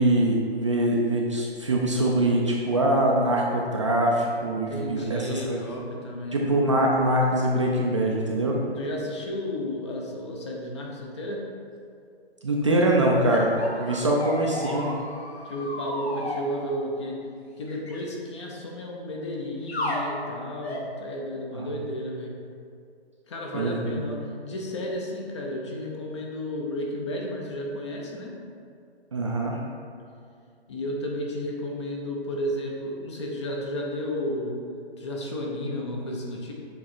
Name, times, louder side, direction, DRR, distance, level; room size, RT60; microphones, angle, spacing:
voice 1, 0.0-5.6 6.3-8.5 12.4-13.5 13.8-15.0 21.5-21.7 23.5-24.0 29.1-29.6, right 1 dB, 30° right, -2 dB, 0.4 m, -23 dB
voice 2, 4.7-6.4 8.8-11.5 14.0-14.1 15.4-17.2 17.6-22.3 23.3-28.3 30.7-34.6 35.0-36.5, left 1 dB, 30° left, -1 dB, 0.6 m, -32 dB
sound 1, 13.3-16.4 17.7-18.0 19.7-20.0 20.6-20.9, left 1 dB, 75° left, 1.3 m, -33 dB
7.4 x 3.1 x 4.3 m, 2.4 s
hypercardioid pair, 160°, 32 cm